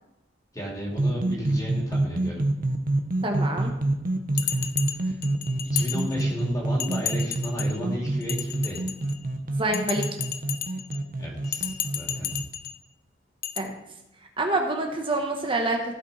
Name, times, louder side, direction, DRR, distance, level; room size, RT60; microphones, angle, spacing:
voice 1, 0.5-2.4 4.9-5.2 5.7-8.8 11.2-12.4, equal, 20° left, -3 dB, 2.7 m, -33 dB
sound 1, 0.9-12.4, right 2 dB, 50° right, 0.8 m, -27 dB
voice 2, 3.2-3.7 9.6-10.0 13.6-13.7 14.4-15.9, right 2 dB, 30° right, 2 dB, 1.2 m, -26 dB
Bell, 4.4-6.4 6.8-7.8 8.2-9.2 9.7-11.0 11.4-12.8 13.4-13.6, left 11 dB, 55° left, 0.5 m, -33 dB
15.0 x 5.4 x 4.1 m, 0.92 s
head